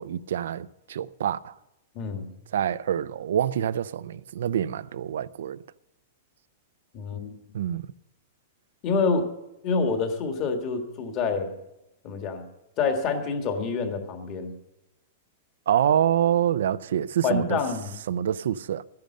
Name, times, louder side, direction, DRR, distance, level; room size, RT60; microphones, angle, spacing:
voice 1, 0.0-1.6 2.5-5.6 7.5-7.9 15.7-17.6 18.1-18.8, right 10 dB, 75° right, 0.5 m, -26 dB
voice 2, 1.9-2.3 6.9-7.4 8.8-9.3 9.6-11.5 12.0-12.4 12.8-14.5 17.2-17.9, left 4 dB, 25° left, 1.7 m, -27 dB
13.5 x 10.5 x 6.5 m
supercardioid pair, 175°, 0 cm